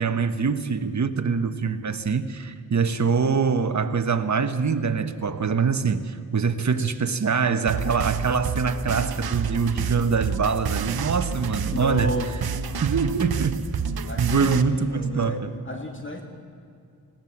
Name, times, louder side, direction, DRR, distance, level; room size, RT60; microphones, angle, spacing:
voice 1, 0.0-12.1 12.8-13.6 14.2-15.5, right 5 dB, 50° right, 8 dB, 1.3 m, -24 dB
sound 1, 7.7-14.6, right 6 dB, 80° right, 0.9 m, -29 dB
voice 2, 11.7-12.4 12.9-13.0 14.1-16.2, left 1 dB, 35° left, 3 dB, 2.2 m, -32 dB
20.5 x 17.0 x 7.3 m, 2.4 s
wide cardioid pair, 80°, 36 cm